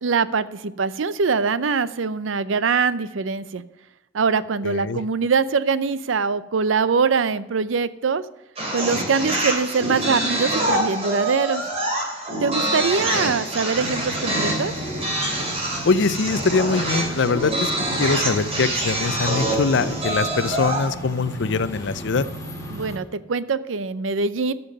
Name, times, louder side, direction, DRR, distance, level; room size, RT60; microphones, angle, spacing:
voice 1, 0.0-3.6 4.1-8.2 8.7-11.7 12.4-14.7 22.7-24.5, right 5 dB, 85° right, 16 dB, 0.6 m, -23 dB
voice 2, 4.6-5.0 15.8-17.7 18.0-22.2, left 4 dB, 65° left, 16 dB, 0.5 m, -22 dB
sound 1, 8.6-20.9, right 1 dB, 30° right, 3.2 m, -25 dB
sound 2, 13.7-23.0, right 1 dB, 15° left, 1.9 m, -35 dB
13.0 x 7.0 x 5.3 m, 1.0 s
head